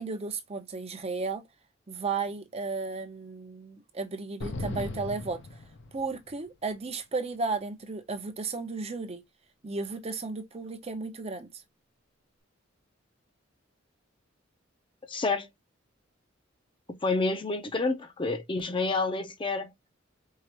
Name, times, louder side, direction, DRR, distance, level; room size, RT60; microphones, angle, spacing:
voice 1, 0.0-1.4 1.9-5.4 5.9-9.2 9.6-11.5, right 4 dB, 35° right, 0.6 m, -34 dB
sound 1, 4.4-6.3, left 2 dB, 65° left, 0.7 m, -37 dB
voice 2, 15.1-15.5 17.0-19.7, left 3 dB, 25° left, 0.6 m, -29 dB
4.7 x 2.5 x 2.9 m
head